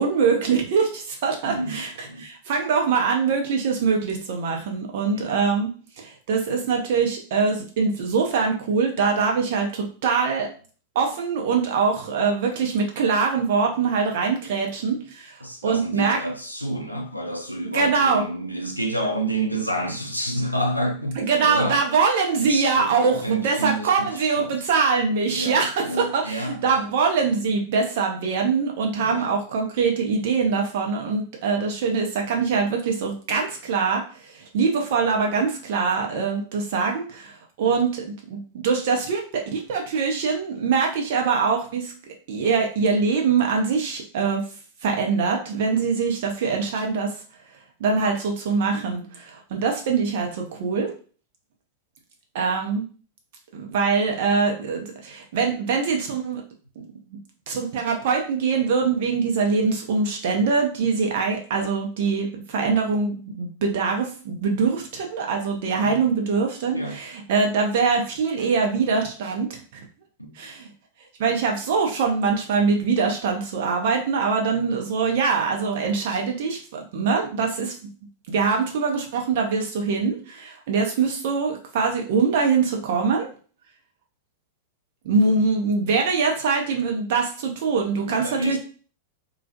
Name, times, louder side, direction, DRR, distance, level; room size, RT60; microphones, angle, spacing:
voice 1, 0.0-1.9 2.2-5.7 6.0-10.5 10.9-15.4 15.6-16.2 17.7-18.2 21.2-41.9 42.3-44.4 44.8-47.1 47.8-50.9 52.3-52.9 53.5-56.4 57.5-69.6 70.4-70.7 71.2-77.7 78.3-83.3 85.0-88.6, right 5 dB, 55° right, 0.6 m, -23 dB
voice 2, 1.5-2.3 5.1-5.4 15.4-21.8 22.4-24.6 25.3-26.8 29.0-29.3 65.7-66.1 66.7-67.0 70.2-70.3 88.0-88.6, right 1 dB, 90° left, 0.4 m, -29 dB
2.3 x 2.1 x 2.7 m
figure-of-eight pair, 90°, 0 cm